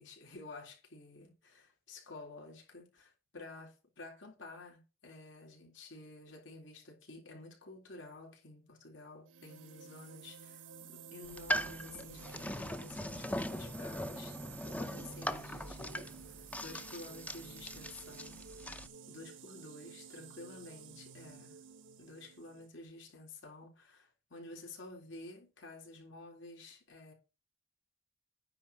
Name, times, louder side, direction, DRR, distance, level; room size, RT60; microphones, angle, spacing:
voice 1, 0.0-14.4 14.7-18.7 19.1-21.6 22.0-27.1, left 2 dB, 80° left, 3.7 m, -51 dB
sound 1, 9.2-22.7, right 5 dB, 75° right, 1.0 m, -51 dB
sound 2, 11.2-18.9, equal, 10° left, 0.6 m, -40 dB
9.8 x 4.4 x 7.0 m
head